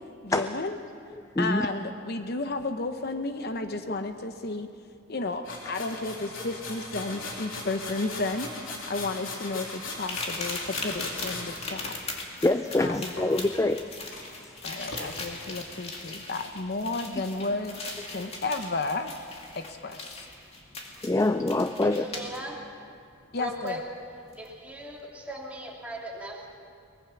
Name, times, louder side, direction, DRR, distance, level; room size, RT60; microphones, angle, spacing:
voice 1, 0.2-0.8 1.4-4.7 5.1-12.0 12.8-13.1 14.6-19.1 19.5-20.3 23.3-23.8, left 3 dB, 50° left, 7 dB, 0.8 m, -32 dB
voice 2, 1.4-1.7 12.4-13.8 14.4-14.6 17.1-17.2 21.0-22.0, left 2 dB, 15° left, 9 dB, 0.4 m, -25 dB
sound 1, 5.4-11.6 13.1-13.8 14.1-14.2 14.9-15.1, left 2 dB, 75° left, 3.7 m, -38 dB
sound 2, 10.0-22.4 23.7-23.8 24.3-24.5, left 3 dB, 30° left, 2.4 m, -39 dB
voice 3, 20.5-20.9 21.8-22.6 23.3-23.8 24.3-26.5, equal, 5° right, -3 dB, 3.1 m, -38 dB
23.0 x 20.0 x 6.0 m, 2.4 s
head